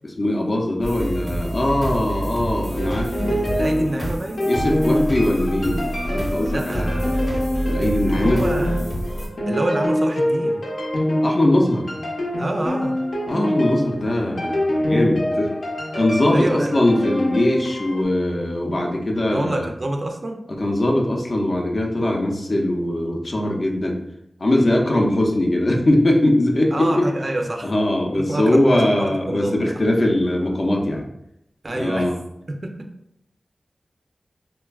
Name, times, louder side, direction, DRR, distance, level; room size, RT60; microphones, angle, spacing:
voice 1, 0.0-3.4 4.5-6.9 7.7-8.5 11.2-11.9 13.3-15.5 15.9-19.7 20.6-24.0 24.4-27.1 27.6-31.0 31.7-32.2, left 1 dB, 50° left, 0 dB, 0.5 m, -21 dB
sound 1, 0.8-9.3, equal, 25° left, 0.8 m, -27 dB
sound 2, 2.7-18.0, equal, 90° left, 0.8 m, -25 dB
voice 2, 3.3-4.5 6.5-7.2 8.0-8.8 9.5-10.6 12.4-13.0 16.3-16.7 19.3-20.4 26.7-27.7 28.1-29.6 31.6-32.1 32.5-32.7, right 1 dB, 40° right, 3 dB, 0.3 m, -27 dB
3.3 x 2.2 x 2.2 m, 0.79 s
wide cardioid pair, 90°, 0 cm